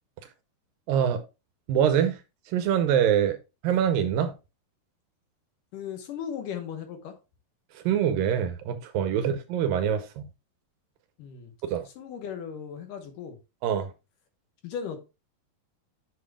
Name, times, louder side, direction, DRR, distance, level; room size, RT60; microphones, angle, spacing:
voice 1, 0.9-1.2 1.7-2.2 2.5-3.4 3.6-4.3 7.7-10.2 11.7-11.9 13.6-13.9, right 9 dB, 80° right, 2.2 m, -24 dB
voice 2, 5.7-7.2 9.1-9.4 11.2-11.5 11.9-13.4 14.6-15.0, left 7 dB, 70° left, 2.4 m, -37 dB
8.5 x 7.5 x 2.3 m
omnidirectional pair, 4.5 m